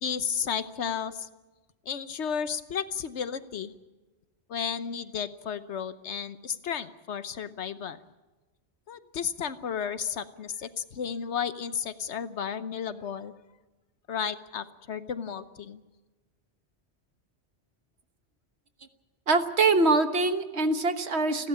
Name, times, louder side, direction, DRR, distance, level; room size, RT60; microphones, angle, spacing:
voice 1, 0.0-1.3 1.9-3.7 4.5-8.0 8.9-13.3 14.1-15.8, left 7 dB, 85° left, 12 dB, 1.2 m, -33 dB
voice 2, 19.3-21.5, right 3 dB, 70° right, 8 dB, 1.6 m, -24 dB
29.5 x 12.0 x 8.6 m, 1.2 s
omnidirectional pair, 1.1 m